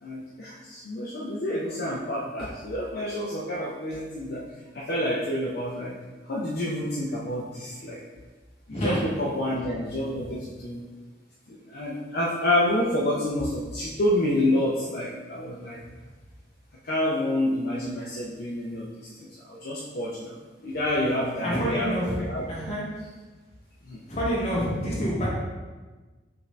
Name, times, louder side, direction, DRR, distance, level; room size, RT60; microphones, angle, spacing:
voice 1, 0.0-4.4 4.7-5.9 6.3-8.0 8.7-10.8 11.5-15.8 16.8-20.3 20.6-22.4 23.9-24.0, left 1 dB, 55° left, -5 dB, 0.5 m, -28 dB
voice 2, 21.4-22.2 22.5-22.8 24.1-25.3, equal, 35° left, -6 dB, 1.3 m, -27 dB
5.5 x 2.6 x 3.2 m, 1.3 s
head